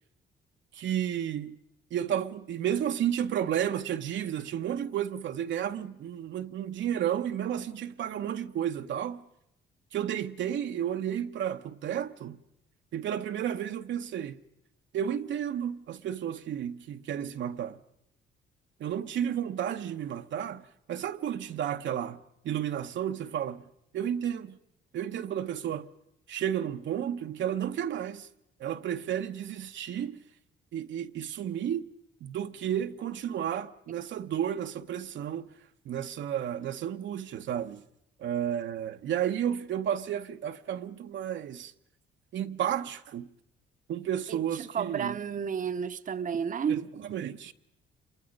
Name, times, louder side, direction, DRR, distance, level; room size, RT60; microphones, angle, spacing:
voice 1, 0.7-1.6 1.9-9.2 9.9-12.4 12.9-14.4 14.9-17.8 18.8-23.6 23.9-24.6 24.9-25.9 26.3-28.3 28.6-30.2 30.7-31.9 32.2-35.5 35.8-37.8 38.2-41.7 42.3-43.3 43.9-45.2 46.7-47.5, right 10 dB, 70° right, 0.9 m, -32 dB
voice 2, 44.3-46.8, right 7 dB, 40° right, 0.8 m, -31 dB
27.0 x 23.5 x 5.3 m
cardioid pair, 90°, 20 cm